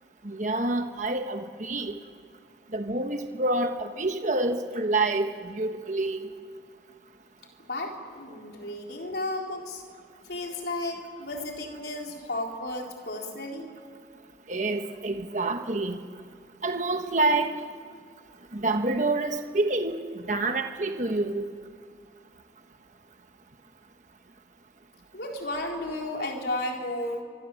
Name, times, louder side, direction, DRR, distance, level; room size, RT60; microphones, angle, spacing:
voice 1, 0.2-1.9 2.7-6.2 14.5-16.0 16.6-17.5 18.5-20.0 20.3-21.4, right 2 dB, 45° right, 5 dB, 1.3 m, -27 dB
voice 2, 7.6-9.8 10.3-13.7 25.1-27.2, left 1 dB, 65° left, 1 dB, 3.9 m, -33 dB
29.5 x 25.0 x 7.7 m, 2.1 s
head